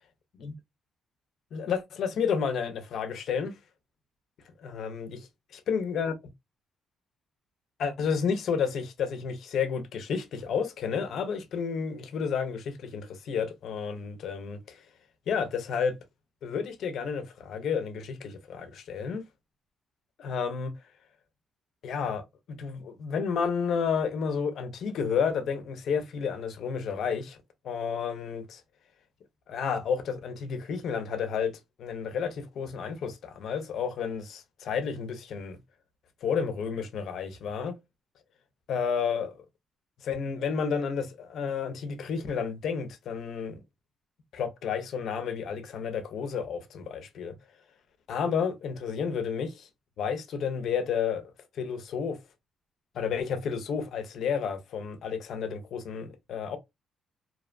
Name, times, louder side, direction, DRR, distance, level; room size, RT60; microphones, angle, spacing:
voice 1, 1.5-3.5 4.7-5.3 5.5-6.3 7.8-14.8 15.3-16.0 16.4-19.2 20.2-20.7 21.8-22.2 22.5-27.4 27.6-28.6 29.5-31.5 31.8-35.6 36.2-37.8 38.7-39.3 40.0-43.6 44.3-47.3 48.1-49.7 50.0-51.3 51.6-52.2 52.9-56.6, left 6 dB, 70° left, 0.5 m, -31 dB
2.6 x 2.0 x 2.4 m
cardioid pair, 90°, 0 cm